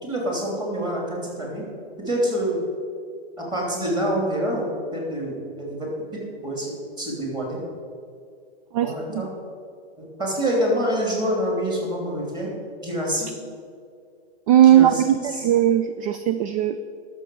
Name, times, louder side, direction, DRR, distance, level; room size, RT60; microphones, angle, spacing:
voice 1, 0.0-1.6 2.1-2.6 3.4-7.6 8.8-9.3 10.0-12.5 12.8-13.3 14.6-15.5, equal, 15° right, -2 dB, 3.0 m, -26 dB
voice 2, 8.7-9.2 14.5-16.9, right 11 dB, 35° right, 11 dB, 0.4 m, -18 dB
11.5 x 6.7 x 7.7 m, 2.3 s
hypercardioid pair, 145°, 32 cm